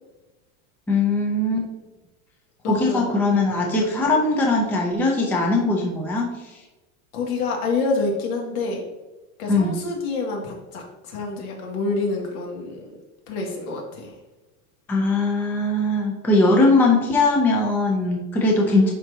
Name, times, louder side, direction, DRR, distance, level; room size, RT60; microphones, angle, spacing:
voice 1, 0.9-1.6 2.7-6.3 9.5-9.8 14.9-18.9, left 2 dB, 5° left, -1 dB, 0.4 m, -20 dB
voice 2, 2.6-3.1 3.5-3.9 7.1-8.8 9.4-12.9 13.3-14.2, left 3 dB, 75° left, 0 dB, 2.2 m, -27 dB
10.5 x 4.0 x 2.7 m, 1.1 s
supercardioid pair, 160°, 43 cm